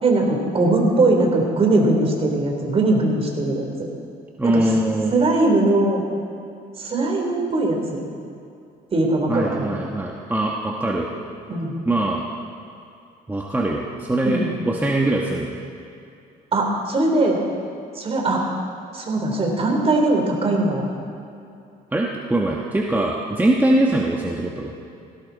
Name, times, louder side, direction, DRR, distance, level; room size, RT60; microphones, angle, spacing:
voice 1, 0.0-3.9 4.4-4.6 5.1-6.0 6.8-8.0 8.9-9.8 11.5-11.7 14.2-14.5 16.5-17.4 17.9-18.4 18.9-20.9, right 2 dB, 35° right, 1 dB, 3.4 m, -20 dB
voice 2, 4.4-5.1 9.3-11.1 11.8-12.2 13.3-15.6 21.9-24.7, right 1 dB, 10° right, -1 dB, 1.2 m, -22 dB
17.5 x 17.0 x 4.1 m, 2.6 s
cardioid pair, 110°, 17 cm